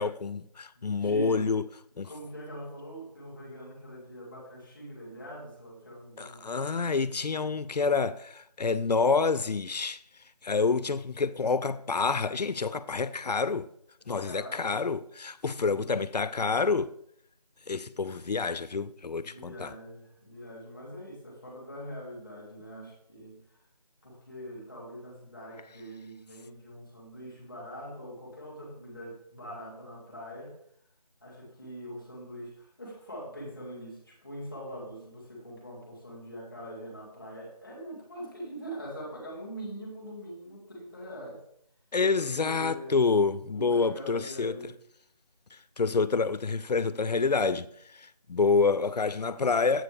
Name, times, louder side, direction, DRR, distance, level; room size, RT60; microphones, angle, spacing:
voice 1, 0.0-1.6 2.0-2.1 6.2-10.0 10.4-13.7 14.1-16.9 17.7-19.7 41.9-44.5 45.8-47.7 47.9-49.8, left 4 dB, 80° left, 0.5 m, -27 dB
voice 2, 0.7-1.6 2.0-6.5 14.2-14.8 15.4-16.0 19.1-23.6 24.0-30.6 31.2-41.4 42.1-43.0 43.5-44.7, equal, ahead, 1.6 m, -43 dB
7.7 x 6.7 x 3.4 m
figure-of-eight pair, 175°, 20 cm